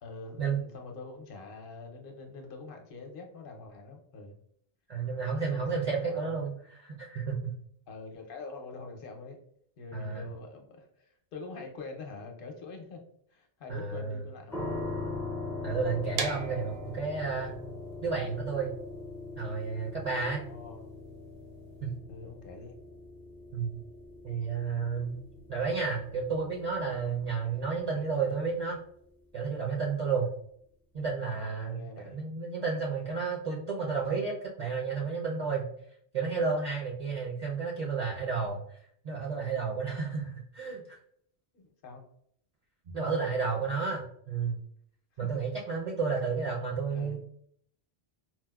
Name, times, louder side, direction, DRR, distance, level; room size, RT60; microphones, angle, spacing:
voice 1, 0.0-4.4 5.5-6.3 7.9-9.4 9.8-13.0 13.3-14.9 20.4-20.9 22.1-22.8 31.3-32.2 41.5-42.0 43.3-43.6 45.2-45.3 46.9-47.2, left 3 dB, 65° left, 3 dB, 0.8 m, -45 dB
voice 2, 4.9-7.5 9.9-10.2 13.7-14.2 15.6-17.6 18.0-18.7 19.4-20.4 21.8-21.9 23.5-23.8 24.2-25.2 25.5-28.8 29.3-30.3 30.9-35.7 36.1-38.6 39.0-41.0 42.9-44.6 45.2-47.2, right 5 dB, 50° right, -3 dB, 0.5 m, -32 dB
sound 1, 14.5-29.4, left 2 dB, 5° left, 0.3 m, -42 dB
sound 2, 16.1-22.0, right 4 dB, 80° right, 0.8 m, -41 dB
4.3 x 2.0 x 2.2 m, 0.66 s
omnidirectional pair, 1.0 m